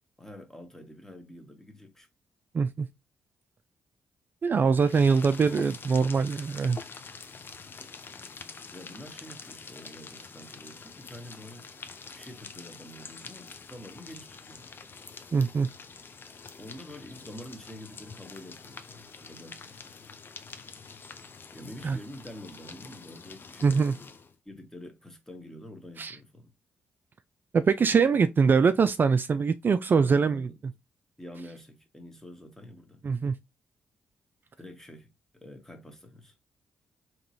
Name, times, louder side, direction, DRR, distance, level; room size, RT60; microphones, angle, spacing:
voice 1, 0.2-2.1 4.6-5.2 8.7-11.7 12.1-14.7 16.6-19.8 21.5-24.1 24.4-26.5 30.0-30.6 31.2-33.0 34.6-36.3, left 1 dB, 10° left, 1.3 m, -47 dB
voice 2, 2.5-2.9 4.4-6.8 15.3-15.7 21.8-22.0 23.6-23.9 26.0-26.2 27.5-30.5 33.0-33.3, right 5 dB, 40° right, 0.3 m, -23 dB
sound 1, 4.7-24.4, left 5 dB, 45° left, 0.6 m, -46 dB
3.7 x 3.0 x 2.8 m
hypercardioid pair, 50°, 5 cm